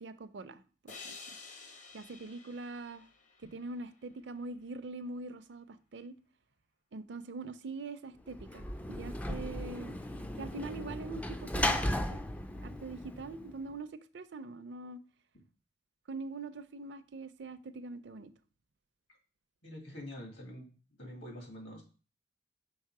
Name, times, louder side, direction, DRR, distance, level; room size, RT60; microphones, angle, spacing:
voice 1, 0.0-1.4 1.9-3.1 3.4-6.1 6.9-10.0 10.4-12.2 12.6-15.0 16.1-18.3, right 3 dB, 70° right, 0.5 m, -43 dB
sound 1, 0.9-4.2, left 4 dB, 40° left, 0.8 m, -51 dB
Sliding door / Slam, 8.3-13.7, left 1 dB, 10° left, 0.3 m, -36 dB
voice 2, 19.6-20.7 21.0-21.8, left 1 dB, 65° left, 2.1 m, -45 dB
5.6 x 3.9 x 4.8 m
head